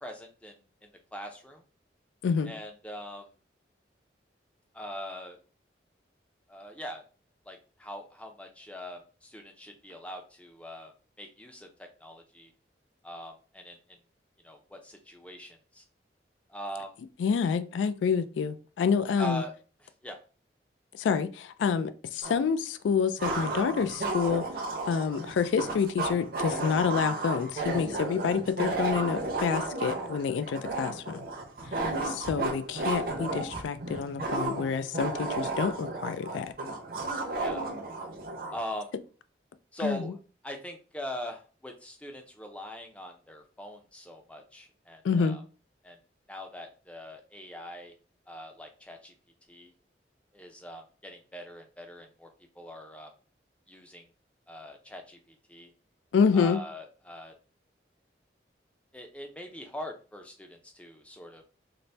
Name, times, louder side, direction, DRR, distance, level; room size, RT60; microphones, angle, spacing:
voice 1, 0.0-1.6 2.4-3.3 4.7-5.4 6.5-7.0 7.5-12.5 13.0-14.0 14.4-15.8 16.5-16.9 19.2-19.5 19.8-20.2 37.4-37.7 38.5-38.9 39.7-40.2 40.4-45.4 45.8-46.0 46.3-47.9 48.3-49.1 49.5-49.7 50.3-52.3 52.5-53.1 53.7-54.1 54.5-55.7 56.3-57.4 58.9-61.5, left 1 dB, 5° left, 0.4 m, -42 dB
voice 2, 17.2-19.4 21.0-24.5 24.9-31.2 31.7-31.8 32.0-36.5 39.8-40.0 45.0-45.4 56.1-56.6, left 6 dB, 90° left, 0.3 m, -28 dB
sound 1, 22.2-22.3 23.2-38.6, right 2 dB, 50° right, 0.6 m, -33 dB
4.0 x 2.0 x 3.2 m
head